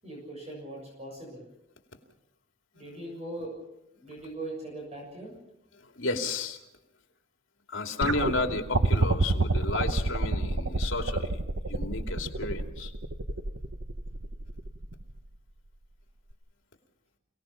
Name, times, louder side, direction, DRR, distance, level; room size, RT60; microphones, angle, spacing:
voice 1, 0.0-1.5 2.7-3.6 4.0-5.4, right 2 dB, 35° right, -1 dB, 6.9 m, -40 dB
voice 2, 5.8-6.6 7.7-11.4 11.7-12.9, left 3 dB, 70° left, 4 dB, 2.7 m, -32 dB
sound 1, 8.0-15.2 16.3-16.4, right 2 dB, 70° right, 1.1 m, -28 dB
29.0 x 19.0 x 5.8 m, 0.85 s
head